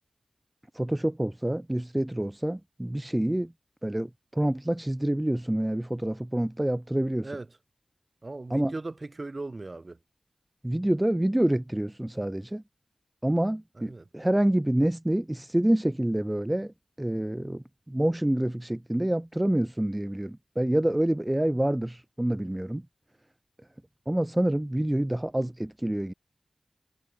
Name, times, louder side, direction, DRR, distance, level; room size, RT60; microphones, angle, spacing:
voice 1, 0.7-3.5 3.8-7.3 8.5-8.7 10.6-12.6 13.2-22.8 24.1-26.1, right 1 dB, 15° right, 0.8 m, -27 dB
voice 2, 8.2-10.0 13.8-14.0, right 2 dB, 40° right, 7.5 m, -38 dB
wide cardioid pair, 60°, 0 cm